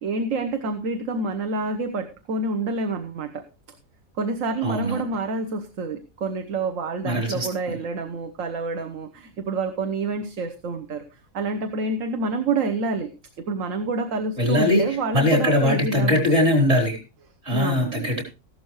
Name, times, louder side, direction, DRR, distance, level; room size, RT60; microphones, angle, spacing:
voice 1, 0.0-3.4 4.2-11.0 11.3-13.1 13.4-16.3 17.5-18.1, right 3 dB, 60° right, 7 dB, 1.3 m, -28 dB
voice 2, 4.6-5.0 7.0-7.8 14.4-17.0 17.4-18.2, left 1 dB, 45° right, 2 dB, 4.4 m, -21 dB
14.5 x 12.0 x 3.1 m, 0.29 s
omnidirectional pair, 1.6 m